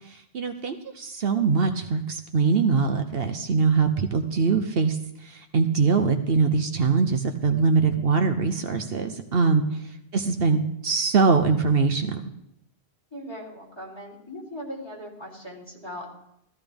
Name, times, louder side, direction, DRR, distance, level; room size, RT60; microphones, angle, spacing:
voice 1, 0.1-9.6 10.1-12.2, right 4 dB, 65° right, 6 dB, 1.0 m, -23 dB
voice 2, 9.4-9.8 13.1-16.1, equal, 25° left, -4 dB, 3.1 m, -39 dB
14.5 x 13.5 x 3.5 m, 0.79 s
omnidirectional pair, 1.1 m